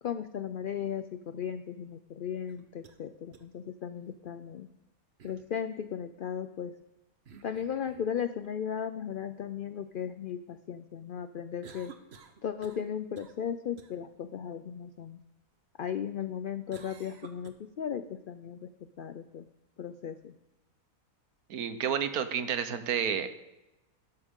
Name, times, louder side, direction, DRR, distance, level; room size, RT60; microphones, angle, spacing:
voice 1, 0.0-4.7 5.2-6.7 7.4-11.9 12.4-15.2 15.8-18.7 19.0-19.5 19.8-20.3, left 8 dB, 90° left, 11 dB, 0.4 m, -36 dB
sound 1, 2.5-3.0 3.3-3.4 5.2-5.5 7.3-8.1 11.6-12.9 13.2-13.4 13.8-13.9 16.7-17.5, right 6 dB, 50° right, 1.1 m, -52 dB
voice 2, 21.5-23.3, right 8 dB, 85° right, 10 dB, 1.4 m, -30 dB
12.5 x 11.5 x 3.7 m, 1.0 s
omnidirectional pair, 1.5 m